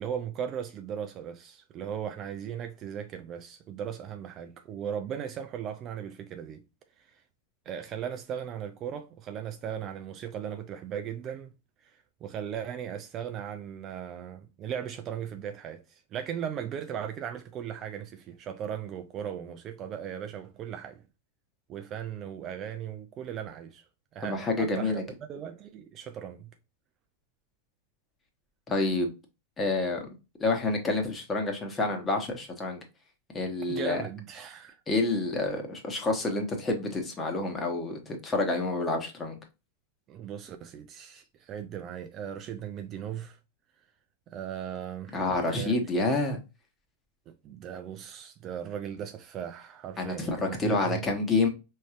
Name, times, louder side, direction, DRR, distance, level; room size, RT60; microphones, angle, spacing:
voice 1, 0.0-6.6 7.7-11.5 11.8-11.9 12.2-21.0 21.7-23.8 24.1-25.0 25.3-26.5 33.7-34.8 40.1-43.4 44.3-45.2 45.5-45.8 47.3-51.1, right 9 dB, 30° right, 0.4 m, -37 dB
voice 2, 24.2-25.0 28.7-29.1 29.6-30.1 30.4-32.8 33.3-34.0 34.9-39.4 45.1-46.4 50.0-51.5, left 2 dB, 20° left, 1.2 m, -28 dB
5.1 x 3.2 x 2.5 m
figure-of-eight pair, 90°, 0 cm